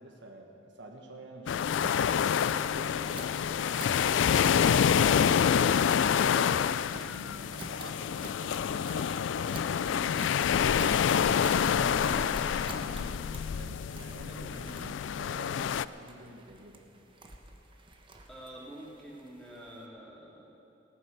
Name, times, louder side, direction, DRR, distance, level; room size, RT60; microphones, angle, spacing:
voice 1, 0.0-4.0 6.9-10.4 11.7-16.8, right 1 dB, 70° right, 1 dB, 1.5 m, -48 dB
sound 1, 1.5-15.8, left 8 dB, 75° left, 0.3 m, -27 dB
sound 2, 1.8-19.8, right 2 dB, 25° right, 1.1 m, -49 dB
voice 2, 11.7-12.6 18.3-20.6, right 1 dB, 5° left, -6 dB, 3.2 m, -48 dB
18.0 x 9.5 x 6.8 m, 2.8 s
head